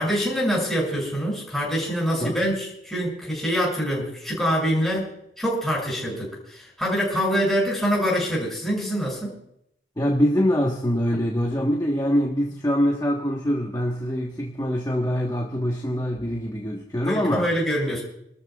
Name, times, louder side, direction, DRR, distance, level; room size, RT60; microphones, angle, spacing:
voice 1, 0.0-9.4 17.1-18.0, equal, ahead, -5 dB, 7.0 m, -25 dB
voice 2, 10.0-17.5, equal, 20° left, -1 dB, 1.3 m, -24 dB
28.0 x 13.0 x 2.4 m, 0.77 s
head